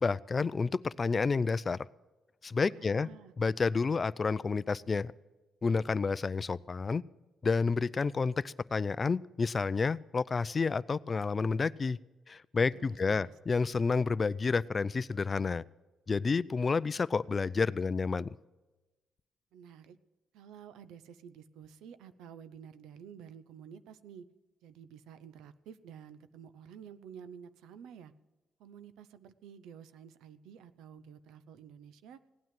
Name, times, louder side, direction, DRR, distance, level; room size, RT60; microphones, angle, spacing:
voice 1, 0.0-1.8 2.4-3.1 3.4-5.1 5.6-7.0 7.4-12.0 12.3-15.6 16.1-18.3, left 4 dB, 35° left, 19 dB, 0.4 m, -30 dB
voice 2, 2.7-3.3 12.7-13.3 19.5-20.0 20.3-24.3 24.6-28.1 28.6-32.2, right 8 dB, 90° right, 14 dB, 0.7 m, -51 dB
17.0 x 9.4 x 7.6 m, 1.1 s
cardioid pair, 90°, 0 cm